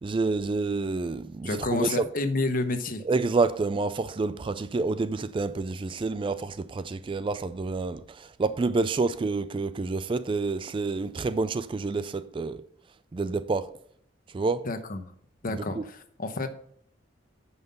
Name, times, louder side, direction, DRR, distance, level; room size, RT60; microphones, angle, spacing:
voice 1, 0.0-2.1 3.1-12.6 13.1-13.7 14.3-14.7 15.5-15.8, right 3 dB, 25° right, 0.3 m, -28 dB
voice 2, 1.4-3.0 14.6-15.0 15.4-16.5, left 2 dB, 45° left, 1.0 m, -29 dB
9.5 x 5.7 x 5.5 m
head